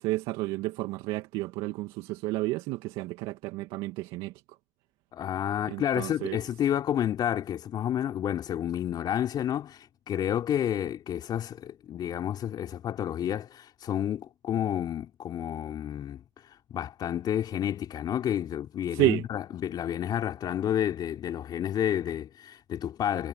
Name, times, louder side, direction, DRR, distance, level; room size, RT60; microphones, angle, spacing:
voice 1, 0.0-4.6 5.7-6.4 18.9-19.2, right 19 dB, 70° right, 2.1 m, -31 dB
voice 2, 5.1-23.3, left 10 dB, 50° left, 4.0 m, -30 dB
hypercardioid pair, 75°, 9 cm